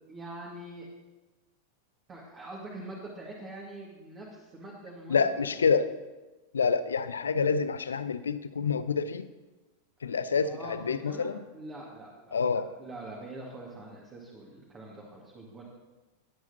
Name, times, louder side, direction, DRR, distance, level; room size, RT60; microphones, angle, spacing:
voice 1, 0.1-0.9 2.1-5.5 10.4-15.6, right 2 dB, 25° right, -4 dB, 2.0 m, -44 dB
voice 2, 5.1-5.9 6.5-9.3 10.0-11.4 12.3-12.7, left 5 dB, 70° left, 13 dB, 0.5 m, -27 dB
19.5 x 8.2 x 2.8 m, 1.1 s
figure-of-eight pair, 90°, 0 cm